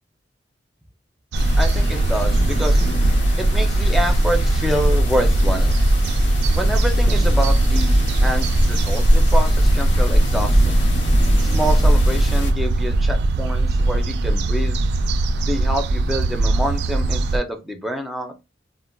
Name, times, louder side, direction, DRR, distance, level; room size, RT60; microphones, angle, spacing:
sound 1, 1.3-12.5, equal, 90° left, 0.9 m, -19 dB
sound 2, 1.3-17.4, right 2 dB, 65° right, 0.3 m, -21 dB
voice 1, 1.5-2.8 3.4-5.7 6.5-10.8 11.4-14.8 15.4-18.3, right 1 dB, ahead, 4 dB, 0.5 m, -27 dB
3.7 x 2.1 x 2.2 m, 0.25 s
head